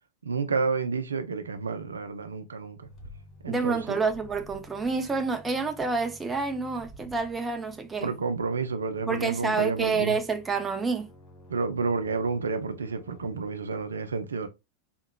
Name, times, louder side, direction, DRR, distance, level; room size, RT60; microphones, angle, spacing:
voice 1, 0.2-2.9 3.4-4.0 8.0-10.2 11.5-14.5, right 4 dB, 70° right, 0.4 m, -30 dB
sound 1, 2.8-13.4, left 1 dB, 35° left, 1.9 m, -51 dB
voice 2, 3.5-8.1 9.1-11.1, right 4 dB, 15° right, 0.6 m, -28 dB
4.3 x 2.8 x 2.2 m
figure-of-eight pair, 90°, 0 cm